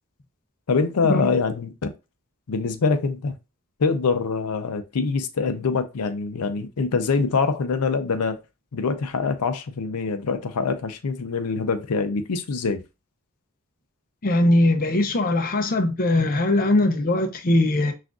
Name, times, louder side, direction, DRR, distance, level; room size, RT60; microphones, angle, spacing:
voice 1, 0.7-1.7 2.5-3.4 3.8-8.4 8.7-12.8, left 4 dB, 85° left, 0.6 m, -24 dB
voice 2, 14.2-17.9, left 1 dB, 40° left, 0.5 m, -20 dB
5.9 x 2.5 x 2.3 m
head